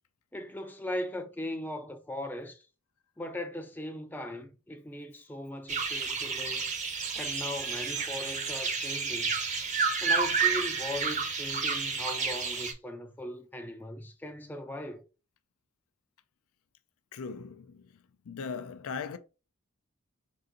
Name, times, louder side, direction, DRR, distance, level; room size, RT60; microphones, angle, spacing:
voice 1, 0.3-2.7 3.2-6.7 7.2-9.4 10.0-15.0, left 1 dB, 10° left, 0.4 m, -39 dB
sound 1, 5.7-12.7, right 5 dB, 30° right, 0.7 m, -30 dB
voice 2, 17.1-17.9 18.3-19.2, left 5 dB, 75° left, 0.4 m, -38 dB
3.9 x 2.5 x 3.8 m
head